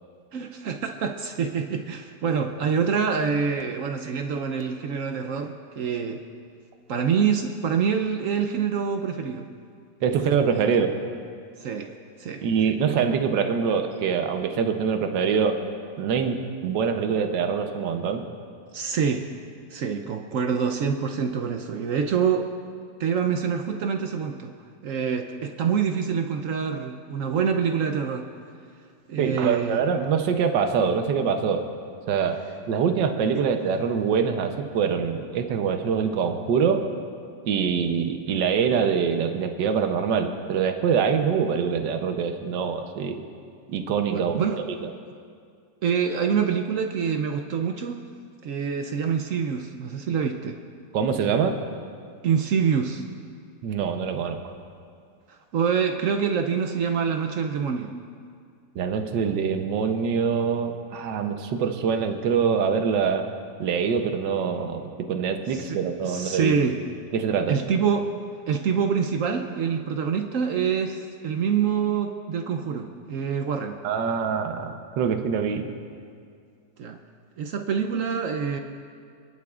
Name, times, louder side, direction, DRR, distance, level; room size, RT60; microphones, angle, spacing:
voice 1, 0.3-6.2 6.9-9.5 10.0-10.3 10.5-10.6 11.6-11.9 12.2-12.7 18.7-19.3 19.7-22.5 23.0-24.5 24.8-28.3 29.1-29.8 44.1-44.6 45.8-48.0 48.4-50.6 52.2-53.0 55.3-57.9 65.5-65.8 66.0-66.8 67.5-68.1 68.5-73.8 76.8-77.0 77.4-78.6, right 6 dB, 65° right, 5 dB, 0.8 m, -26 dB
voice 2, 10.0-11.0 12.4-15.6 16.0-18.2 29.2-31.7 32.1-36.9 37.4-43.2 43.7-44.3 50.9-51.6 53.6-54.4 58.8-63.3 63.6-66.6 67.1-67.6 73.8-75.7, right 6 dB, 85° right, 6 dB, 1.5 m, -24 dB
26.5 x 11.0 x 2.4 m, 2.2 s
omnidirectional pair, 1.9 m